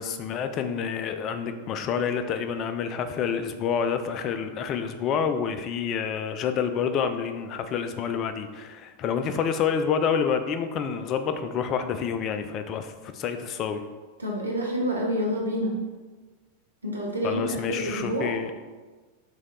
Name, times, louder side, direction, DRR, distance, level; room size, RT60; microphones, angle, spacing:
voice 1, 0.0-13.8 17.2-18.5, left 7 dB, 35° left, 8 dB, 0.3 m, -28 dB
voice 2, 14.2-15.7 16.8-18.3, equal, 75° right, -2 dB, 0.7 m, -28 dB
3.3 x 3.0 x 3.7 m, 1.4 s
figure-of-eight pair, 90°, 0 cm